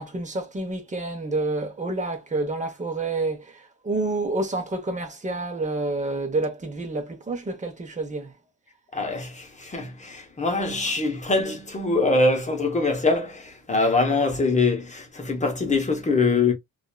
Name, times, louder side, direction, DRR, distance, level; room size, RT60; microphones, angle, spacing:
voice 1, 0.0-8.3, right 2 dB, 25° right, 0.9 m, -28 dB
voice 2, 8.9-16.5, left 3 dB, 25° left, 1.0 m, -23 dB
2.7 x 2.4 x 2.2 m
cardioid pair, 115°, 30 cm